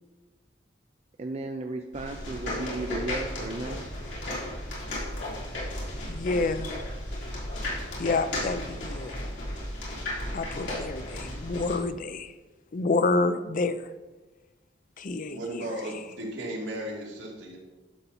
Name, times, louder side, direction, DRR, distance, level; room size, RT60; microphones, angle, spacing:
voice 1, 1.2-3.9, right 2 dB, 35° right, 4 dB, 0.5 m, -35 dB
sound 1, 1.9-11.8, left 1 dB, 80° left, 3.4 m, -34 dB
voice 2, 6.1-6.8 8.0-9.1 10.3-12.3 12.7-13.9 15.0-15.7, left 3 dB, 50° left, 12 dB, 0.5 m, -28 dB
voice 3, 15.3-17.6, right 1 dB, 75° right, -2 dB, 2.4 m, -35 dB
11.0 x 6.7 x 4.2 m, 1.2 s
head